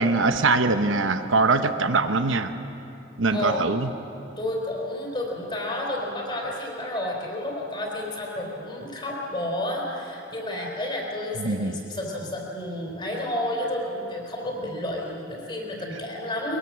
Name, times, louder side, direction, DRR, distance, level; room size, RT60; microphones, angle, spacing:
voice 1, 0.0-2.5 3.2-3.9 11.4-11.7, right 3 dB, 75° right, 9 dB, 1.0 m, -22 dB
voice 2, 3.3-3.6 4.4-16.6, left 1 dB, 25° left, -1 dB, 3.9 m, -31 dB
22.5 x 21.0 x 7.4 m, 2.8 s
head